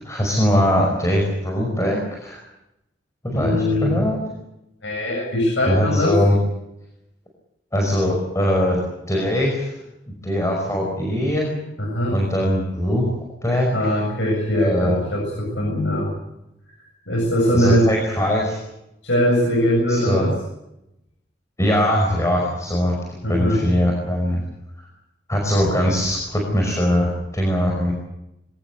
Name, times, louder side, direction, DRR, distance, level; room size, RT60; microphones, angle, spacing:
voice 1, 0.0-2.4 3.2-4.2 5.7-6.4 7.7-8.8 9.1-9.8 10.2-11.5 12.1-13.1 13.4-14.0 14.5-15.0 17.5-18.6 19.9-20.3 21.6-24.4 25.3-27.9, equal, 15° left, 0 dB, 5.4 m, -21 dB
voice 2, 3.3-3.9 4.8-6.2 11.8-12.2 13.7-16.1 17.1-17.9 19.0-20.3 23.2-23.6, left 1 dB, 85° left, 0 dB, 7.6 m, -21 dB
24.0 x 19.0 x 8.2 m, 0.87 s
head